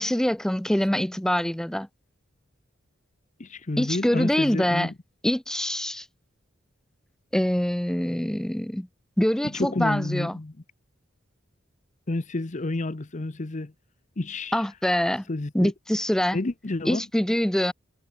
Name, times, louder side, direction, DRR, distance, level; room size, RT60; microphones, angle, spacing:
voice 1, 0.0-1.9 3.8-4.9 5.2-6.1 7.3-8.9 9.2-10.4 14.5-15.2 15.5-16.4 16.9-17.7, equal, 5° left, 0.3 m, -24 dB
voice 2, 3.4-4.9 9.4-10.5 12.1-13.7 14.2-14.6 15.3-15.7 16.3-17.0, left 2 dB, 40° left, 0.8 m, -30 dB
head